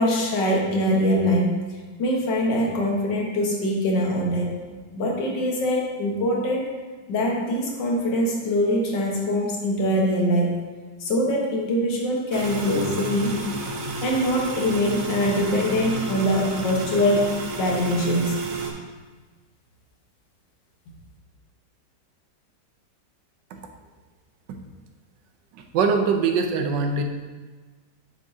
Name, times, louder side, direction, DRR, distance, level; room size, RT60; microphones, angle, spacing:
voice 1, 0.0-1.5 2.0-4.5 4.9-6.7 7.1-10.6 11.0-13.4 14.0-18.3, equal, 90° left, -1 dB, 1.9 m, -23 dB
sound 1, 12.3-18.7, right 3 dB, 55° right, 1.2 m, -31 dB
voice 2, 25.7-27.0, right 5 dB, 85° right, 5 dB, 1.4 m, -22 dB
8.3 x 6.7 x 2.7 m, 1.3 s
omnidirectional pair, 1.9 m